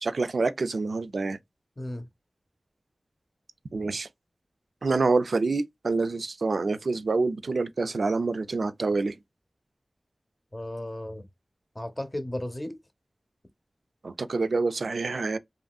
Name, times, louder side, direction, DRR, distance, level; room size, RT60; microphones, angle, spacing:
voice 1, 0.0-1.4 3.7-4.1 4.8-9.2 14.0-15.4, right 3 dB, 85° right, 0.3 m, -27 dB
voice 2, 1.8-2.1 10.5-11.3 11.7-12.7, left 1 dB, 20° left, 0.6 m, -34 dB
2.9 x 2.6 x 2.3 m
wide cardioid pair, 55°, 0 cm